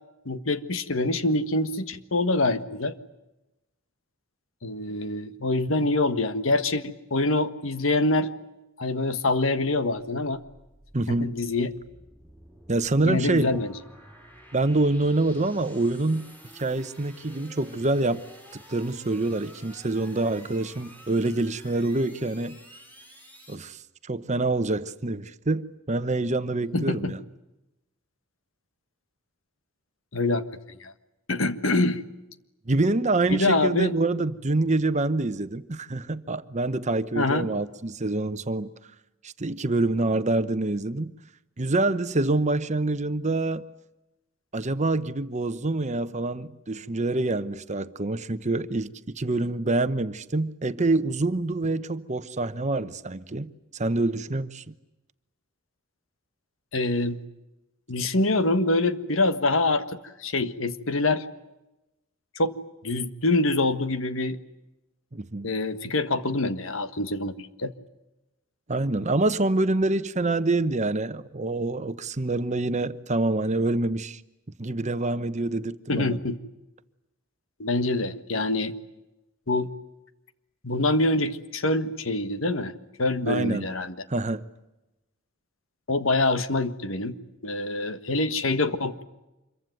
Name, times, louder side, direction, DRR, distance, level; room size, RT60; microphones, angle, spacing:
voice 1, 0.2-2.9 4.6-8.3 8.8-10.4 11.1-11.7 13.0-13.7 26.7-27.1 30.1-30.9 31.3-32.0 33.3-33.9 37.1-37.5 56.7-57.2 57.9-61.2 62.3-62.6 62.8-64.4 65.4-67.7 75.9-76.4 77.6-78.7 79.5-79.7 80.6-82.7 83.0-83.9 85.9-87.1 87.4-89.0, left 2 dB, 75° left, 1.5 m, -25 dB
sound 1, 10.0-23.5, equal, 10° left, 6.3 m, -51 dB
voice 2, 10.9-11.4 12.7-13.6 14.5-18.2 18.5-22.6 23.5-23.8 24.1-27.2 32.7-38.7 39.2-41.1 41.6-43.6 44.5-54.7 65.1-65.5 68.7-74.2 74.6-76.2 83.3-83.7 84.1-84.5, right 2 dB, 35° right, 1.0 m, -26 dB
26.5 x 23.0 x 9.3 m
head